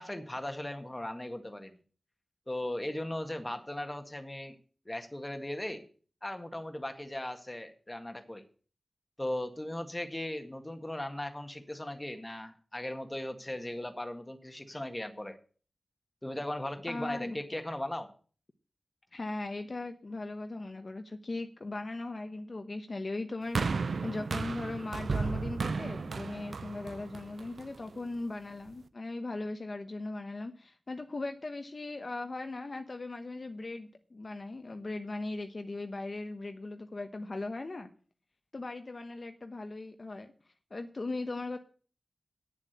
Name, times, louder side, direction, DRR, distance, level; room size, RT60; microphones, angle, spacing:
voice 1, 0.0-1.8 2.5-4.6 4.9-5.9 6.2-8.4 9.2-15.4 16.2-18.1, left 1 dB, 15° left, 1.7 m, -38 dB
voice 2, 16.9-17.4 19.1-37.9 38.5-40.3 40.7-41.6, left 2 dB, 50° left, 1.0 m, -38 dB
sound 1, 23.5-27.9 28.7-28.8, right 4 dB, 80° right, 0.6 m, -34 dB
9.7 x 7.3 x 8.1 m
wide cardioid pair, 85°, 0 cm